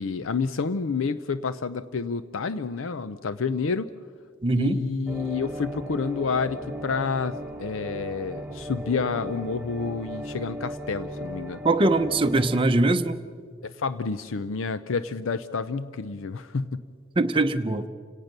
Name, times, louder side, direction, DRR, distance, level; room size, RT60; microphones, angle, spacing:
voice 1, 0.0-3.9 4.5-11.6 13.6-16.8, left 5 dB, 70° left, 13 dB, 0.6 m, -29 dB
voice 2, 4.4-4.8 11.6-13.2 17.2-17.9, right 2 dB, 25° right, 6 dB, 0.7 m, -22 dB
sound 1, 5.1-12.6, right 1 dB, 10° right, 1.1 m, -37 dB
29.5 x 18.0 x 6.6 m, 2.1 s
head